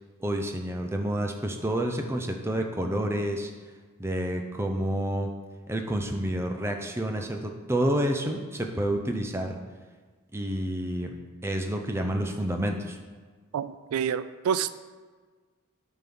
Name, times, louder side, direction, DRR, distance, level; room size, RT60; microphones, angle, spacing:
voice 1, 0.2-3.5 4.0-5.3 5.7-9.6 10.3-11.1 11.4-13.0, right 1 dB, 10° right, 3 dB, 0.6 m, -29 dB
voice 2, 13.5-14.7, right 7 dB, 90° right, 14 dB, 0.3 m, -28 dB
8.7 x 3.8 x 6.0 m, 1.4 s
head